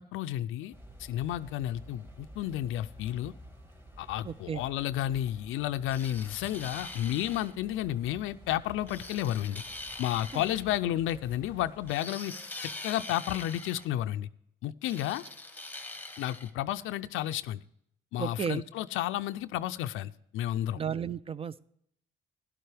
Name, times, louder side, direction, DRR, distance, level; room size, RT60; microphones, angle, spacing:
voice 1, 0.1-0.7 1.0-3.3 4.0-9.6 10.0-12.3 12.6-14.3 14.6-15.2 16.2-17.6 18.1-20.8, left 12 dB, 90° left, 10 dB, 0.4 m, -32 dB
sound 1, 0.7-11.9, equal, 10° right, 1.8 m, -51 dB
voice 2, 4.2-4.6 10.3-10.4 18.2-18.6 20.7-21.6, right 7 dB, 30° right, 18 dB, 0.4 m, -33 dB
sound 2, 5.9-7.5 8.9-10.6 11.9-13.9 14.8-16.5, left 2 dB, 10° left, 1.0 m, -43 dB
12.5 x 11.0 x 3.3 m, 0.71 s
cardioid pair, 90°, 20 cm